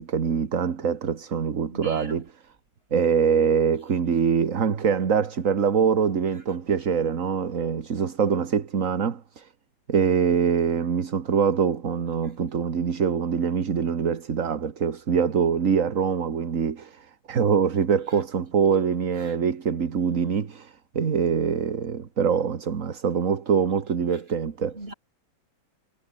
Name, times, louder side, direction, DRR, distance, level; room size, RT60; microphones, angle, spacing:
voice 1, 0.0-2.2 2.9-9.5 9.9-24.8, right 6 dB, 45° right, 1.7 m, -24 dB
voice 2, 1.7-2.2 19.2-19.3 24.7-24.9, right 1 dB, 30° right, 6.0 m, -39 dB
omnidirectional pair, 2.2 m